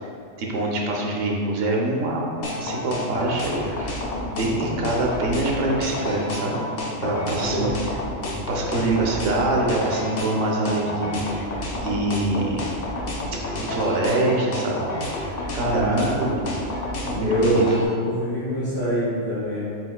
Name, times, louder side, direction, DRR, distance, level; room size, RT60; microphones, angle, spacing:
voice 1, 0.4-2.3 2.6-4.0 4.2-6.6 7.0-7.7 8.5-11.2 11.7-12.6 13.6-14.8 15.5-16.4 17.0-17.6, right 2 dB, 75° right, -1 dB, 1.0 m, -24 dB
sound 1, 2.4-17.9, left 2 dB, 65° left, 0.4 m, -29 dB
voice 2, 15.7-16.1 17.2-19.7, equal, 35° right, -14 dB, 1.3 m, -24 dB
4.2 x 4.2 x 2.2 m, 2.3 s
omnidirectional pair, 1.3 m